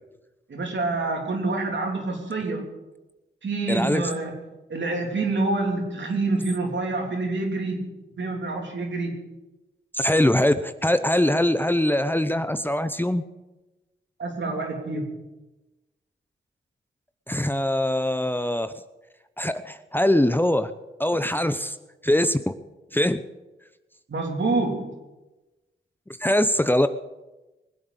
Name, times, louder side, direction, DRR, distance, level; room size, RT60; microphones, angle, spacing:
voice 1, 0.5-2.7 3.4-4.3 4.7-9.3 14.2-15.1 24.1-24.9, right 3 dB, 65° right, 2 dB, 3.3 m, -27 dB
voice 2, 3.7-4.0 9.9-13.2 17.3-18.7 19.4-20.7 21.0-21.8 22.0-22.5 22.9-23.2 26.2-26.9, left 1 dB, 10° left, 11 dB, 0.8 m, -22 dB
20.5 x 7.9 x 8.0 m, 1.1 s
cardioid pair, 50°, 20 cm